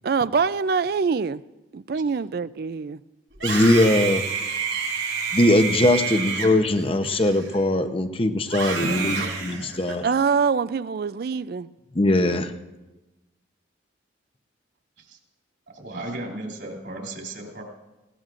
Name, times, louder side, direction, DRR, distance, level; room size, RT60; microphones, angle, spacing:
voice 1, 0.0-1.4 1.7-3.0 10.0-11.7, right 5 dB, 55° right, 0.4 m, -24 dB
Screaming, 3.3-7.8 8.4-10.2, right 5 dB, 85° right, 6.1 m, -29 dB
voice 2, 3.4-4.2 5.3-10.0 12.0-12.5, left 1 dB, 30° left, 0.7 m, -20 dB
voice 3, 8.8-9.7 15.0-15.2 15.7-17.6, right 1 dB, 70° right, 3.2 m, -34 dB
20.0 x 18.0 x 2.5 m
head